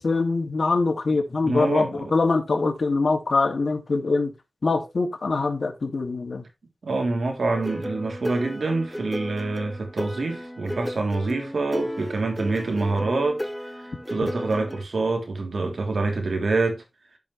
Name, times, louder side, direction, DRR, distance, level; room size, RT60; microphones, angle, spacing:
voice 1, 0.0-4.3 4.6-6.4, left 3 dB, 70° left, 2.5 m, -23 dB
voice 2, 1.4-2.1 6.8-13.4 13.7-16.8, right 3 dB, 80° right, 3.4 m, -26 dB
sound 1, 7.5-14.8, equal, 5° left, 1.3 m, -34 dB
14.0 x 5.6 x 3.3 m
wide cardioid pair, 70°, 0 cm